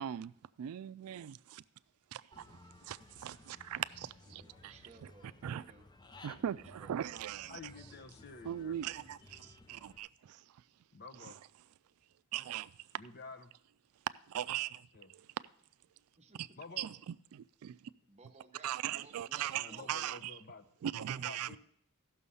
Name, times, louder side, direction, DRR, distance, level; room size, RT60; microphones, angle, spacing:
voice 1, 0.0-1.6 2.1-2.6 2.8-4.7 5.4-5.6 6.2-7.6 8.4-10.4 12.3-12.7 14.3-15.3 16.4-16.5 16.8-17.8 18.6-20.3 20.8-21.6, right 10 dB, 75° right, 0.3 m, -40 dB
Human voice / Bird, 2.3-10.0, left 2 dB, 20° left, 0.5 m, -58 dB
voice 2, 4.3-5.9 6.4-7.5 16.2-16.6 18.1-20.1, right 4 dB, 30° right, 0.9 m, -59 dB
voice 3, 7.5-8.8 10.9-11.4 13.0-13.5 14.9-15.1 16.6-16.9 19.5-20.7 20.9-21.6, left 4 dB, 45° left, 0.9 m, -50 dB
14.5 x 6.3 x 5.5 m
head